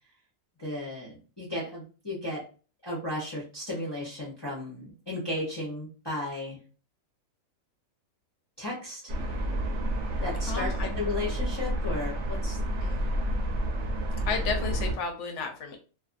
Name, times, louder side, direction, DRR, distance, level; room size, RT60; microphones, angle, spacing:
voice 1, 0.6-2.4 2.8-6.6 8.6-9.1 10.2-12.6, left 1 dB, 25° left, -6 dB, 0.6 m, -34 dB
sound 1, 9.1-14.9, right 1 dB, 65° right, 1.0 m, -30 dB
voice 2, 10.5-10.9 12.8-13.2 14.3-15.8, left 5 dB, 65° left, 4 dB, 0.8 m, -33 dB
2.5 x 2.5 x 2.4 m, 0.37 s
omnidirectional pair, 1.4 m